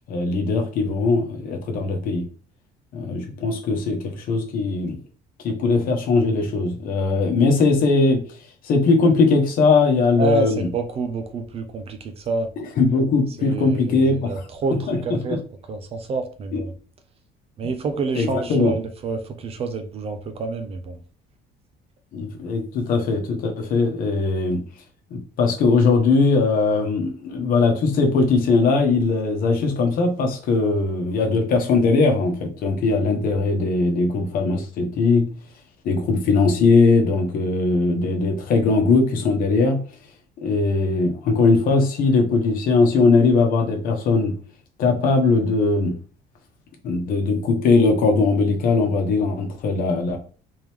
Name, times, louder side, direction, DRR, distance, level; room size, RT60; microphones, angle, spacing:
voice 1, 0.1-2.2 2.9-5.0 5.4-8.2 8.6-10.7 12.6-14.3 14.7-15.2 16.5-16.6 18.1-18.7 22.1-24.6 25.1-35.3 35.8-39.8 40.4-44.3 44.8-45.9 46.8-50.2, left 3 dB, 50° left, 3 dB, 1.0 m, -20 dB
voice 2, 10.2-12.5 13.4-15.4 15.7-16.7 17.6-21.0, right 3 dB, 35° right, 8 dB, 0.5 m, -27 dB
3.6 x 3.0 x 3.4 m, 0.40 s
cardioid pair, 165°, 18 cm